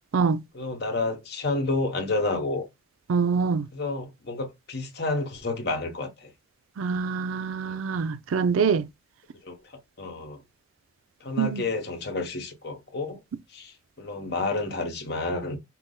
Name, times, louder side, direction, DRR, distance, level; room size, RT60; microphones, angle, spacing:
voice 1, 0.5-2.7 3.7-6.3 7.6-7.8 9.4-10.4 11.2-13.2 13.5-15.6, left 3 dB, 50° left, 1.0 m, -30 dB
voice 2, 3.1-3.6 6.8-8.8 11.4-11.6, right 5 dB, 85° right, 0.4 m, -24 dB
5.7 x 2.0 x 3.7 m
head